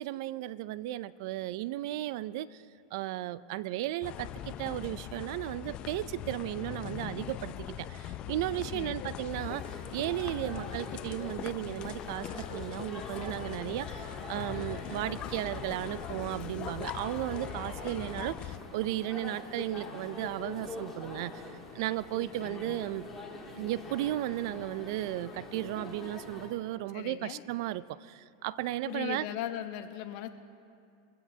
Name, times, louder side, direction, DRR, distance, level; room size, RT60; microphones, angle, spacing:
voice 1, 0.0-2.6 2.9-21.4 21.7-23.0 23.6-29.3, right 15 dB, 60° right, 18 dB, 0.4 m, -35 dB
sound 1, 4.0-18.6, left 11 dB, 40° left, 0.5 m, -41 dB
voice 2, 8.7-9.1 26.9-27.4 28.8-30.3, left 12 dB, 55° left, 8 dB, 0.9 m, -38 dB
sound 2, 9.3-26.5, left 3 dB, 15° left, 2.5 m, -44 dB
22.5 x 15.5 x 2.8 m, 2.5 s
hypercardioid pair, 120°, 3 cm